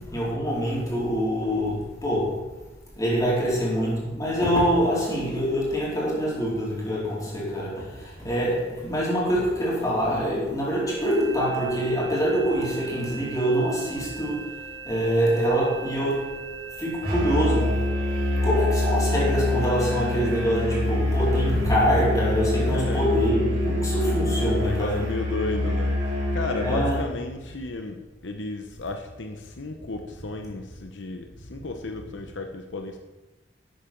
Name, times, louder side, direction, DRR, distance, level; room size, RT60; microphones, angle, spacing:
voice 1, 0.0-2.5 3.0-14.6 14.8-16.4 16.8-17.9 18.4-25.0 26.6-27.0, equal, 20° left, 4.2 m, -25 dB
sound 1, 10.9-20.6, right 4 dB, 75° right, 3.4 m, -40 dB
Musical instrument, 17.0-27.0, left 1 dB, 55° right, 4.2 m, -25 dB
voice 2, 22.6-23.1 24.6-33.0, left 2 dB, 80° left, 0.9 m, -34 dB
12.5 x 8.6 x 4.5 m
head